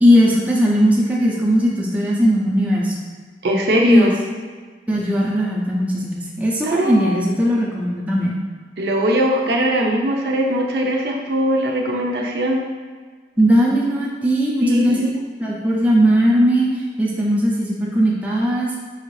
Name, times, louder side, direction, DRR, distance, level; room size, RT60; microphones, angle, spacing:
voice 1, 0.0-3.0 3.9-4.1 4.9-8.3 13.4-15.1 15.4-18.8, equal, 10° right, -5 dB, 0.5 m, -18 dB
voice 2, 3.4-4.1 6.6-7.3 8.8-12.6 14.6-15.2, equal, 65° right, 0 dB, 0.5 m, -20 dB
5.5 x 2.5 x 3.1 m, 1.5 s
head